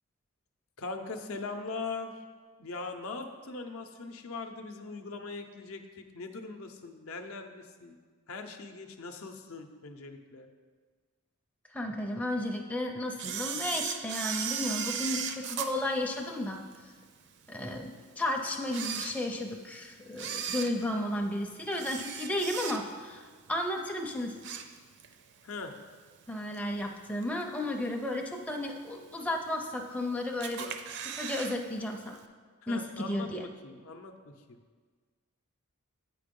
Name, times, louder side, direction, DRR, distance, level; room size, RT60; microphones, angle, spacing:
voice 1, 0.8-2.2 2.6-8.0 8.3-10.5 25.4-25.8 32.6-34.6, left 3 dB, 70° left, 6 dB, 0.6 m, -41 dB
voice 2, 11.7-16.6 17.5-23.2 23.5-24.3 26.3-30.8 31.1-32.2 32.7-33.4, left 1 dB, 5° left, 1 dB, 0.4 m, -33 dB
Camera, 13.2-16.8 17.3-17.4 18.1-18.2 18.6-19.6 20.1-23.1 23.5-23.8 24.1-25.2 25.5-25.6 26.5-26.6 27.2-27.6 28.0-28.1 28.3-28.4 28.6-28.7 29.5-30.0 30.4-31.6 31.8-31.9 32.2-32.3, right 7 dB, 55° right, 0.5 m, -36 dB
8.4 x 4.6 x 5.2 m, 1.5 s
head